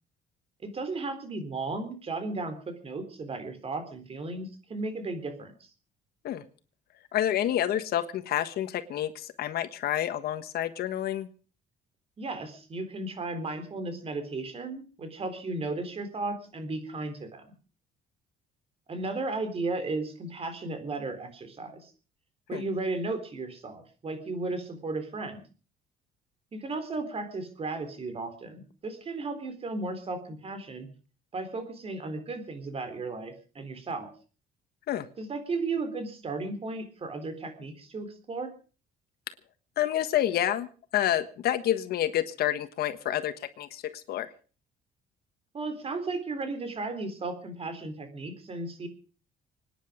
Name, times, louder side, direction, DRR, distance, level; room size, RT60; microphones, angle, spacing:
voice 1, 0.6-5.5 12.2-17.5 18.9-21.9 22.5-25.4 26.5-30.9 31.3-34.1 35.2-38.5 45.5-48.9, right 3 dB, 35° right, 9 dB, 3.9 m, -35 dB
voice 2, 7.1-11.3 22.5-22.6 34.9-35.1 39.8-44.3, left 11 dB, 65° left, 11 dB, 1.4 m, -29 dB
25.0 x 10.0 x 5.1 m, 0.38 s
cardioid pair, 110°, 17 cm